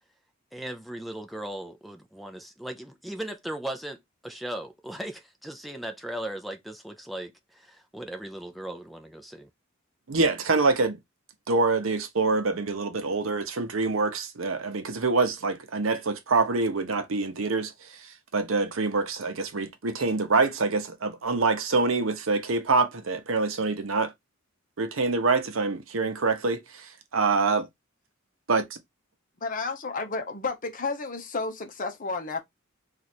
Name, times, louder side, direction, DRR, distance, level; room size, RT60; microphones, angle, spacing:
voice 1, 0.5-4.0 4.2-9.5, right 1 dB, ahead, 0.5 m, -37 dB
voice 2, 10.1-11.0 11.5-17.7 18.3-24.1 24.8-27.7 28.5-28.6, right 3 dB, 75° right, 0.7 m, -25 dB
voice 3, 29.4-32.4, left 3 dB, 40° left, 0.7 m, -31 dB
3.0 x 2.5 x 4.2 m
head